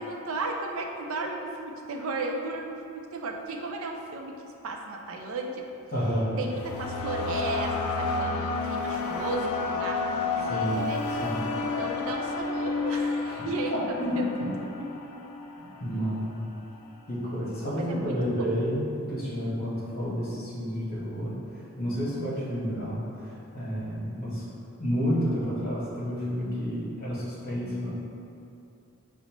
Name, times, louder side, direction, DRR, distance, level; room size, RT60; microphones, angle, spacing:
voice 1, 0.0-5.7 6.4-11.0 11.6-14.3 14.6-14.9 17.8-18.5, right 2 dB, 70° right, 2 dB, 0.4 m, -35 dB
voice 2, 5.9-6.3 10.5-10.8 11.2-11.4 13.2-13.3 13.7-14.4 15.6-16.4 17.1-21.3 21.8-24.5 24.8-27.9, equal, 45° left, -8 dB, 1.0 m, -30 dB
sound 1, 6.0-16.2, left 3 dB, 90° left, 0.3 m, -31 dB
5.1 x 2.0 x 2.9 m, 2.6 s
head